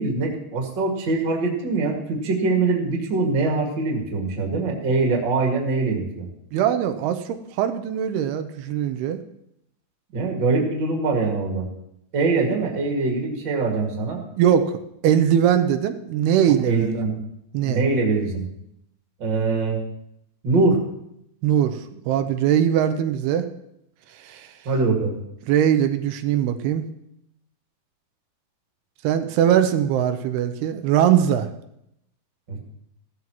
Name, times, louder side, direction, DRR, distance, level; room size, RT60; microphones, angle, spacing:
voice 1, 0.0-6.3 10.1-11.7 12.1-14.2 16.6-17.1 17.6-18.4 19.2-19.8 20.4-20.8 24.6-25.2 32.5-32.6, right 3 dB, 35° right, 0 dB, 2.1 m, -23 dB
voice 2, 6.5-9.2 14.4-17.0 17.5-17.8 21.4-23.5 24.1-24.5 25.5-26.8 29.0-31.5, right 9 dB, 85° right, 8 dB, 2.7 m, -21 dB
16.5 x 13.5 x 3.0 m, 0.79 s
omnidirectional pair, 4.6 m